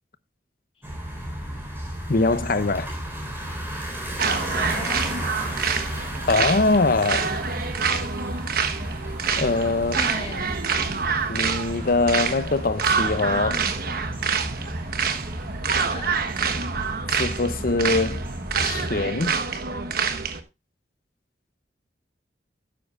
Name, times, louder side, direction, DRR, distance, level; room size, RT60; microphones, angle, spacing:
sound 1, 0.8-19.0, equal, 15° right, 4.2 m, -34 dB
voice 1, 2.1-2.9 6.3-7.3 9.4-10.0 11.3-13.7 17.2-18.3 18.6-19.3, left 3 dB, 55° left, 0.8 m, -23 dB
voice 2, 4.2-5.2 9.9-10.7 15.9-16.2, left 2 dB, 30° left, 1.5 m, -37 dB
sound 2, 4.2-20.4, right 5 dB, 55° right, 1.2 m, -27 dB
12.5 x 9.9 x 2.5 m
head